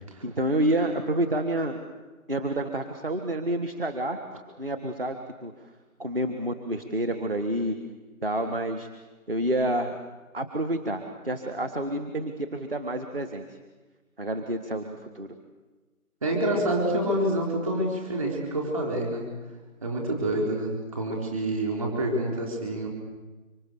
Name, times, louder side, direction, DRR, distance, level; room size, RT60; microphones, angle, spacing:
voice 1, 0.2-1.8 2.3-4.2 4.6-5.2 5.4-5.5 6.0-7.8 8.2-8.9 9.3-10.0 10.3-13.4 14.2-15.3, right 1 dB, 40° right, 6 dB, 1.6 m, -28 dB
voice 2, 16.2-19.3 19.8-22.9, right 1 dB, 25° right, -1 dB, 4.2 m, -27 dB
25.5 x 25.0 x 7.0 m, 1.2 s
figure-of-eight pair, 170°, 43 cm